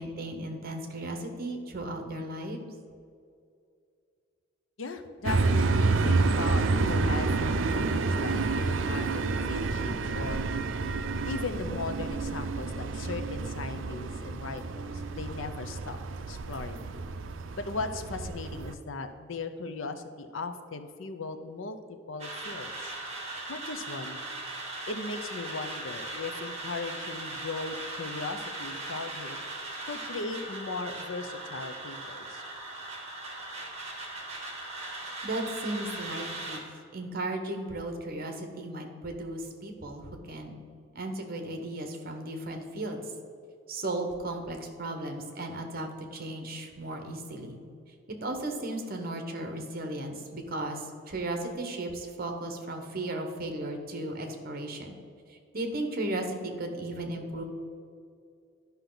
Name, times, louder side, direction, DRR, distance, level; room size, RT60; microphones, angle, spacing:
voice 1, 0.0-2.7 35.2-36.6 36.9-40.6 40.9-43.0 43.7-47.6 48.1-55.0 55.3-57.4, right 1 dB, 50° right, 4 dB, 1.1 m, -35 dB
voice 2, 4.8-10.4 11.2-16.0 16.3-17.0 17.5-21.8 22.1-22.9 23.5-24.2 24.9-29.4 29.9-32.4, left 3 dB, 70° left, 8 dB, 0.6 m, -38 dB
sound 1, 5.2-18.7, right 3 dB, 70° right, 0.5 m, -29 dB
sound 2, 22.2-36.6, right 2 dB, 30° right, 1.8 m, -39 dB
12.0 x 5.7 x 3.9 m, 2.4 s
head